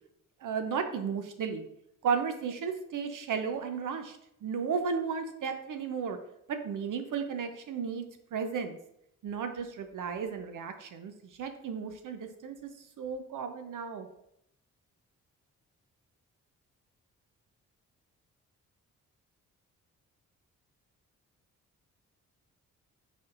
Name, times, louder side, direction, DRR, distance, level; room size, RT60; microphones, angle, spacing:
voice 1, 0.4-1.7 2.0-6.2 6.5-8.1 8.3-8.8 9.2-14.1, right 6 dB, 55° right, 7 dB, 0.6 m, -34 dB
4.9 x 4.3 x 2.5 m, 0.77 s
hypercardioid pair, 45°, 38 cm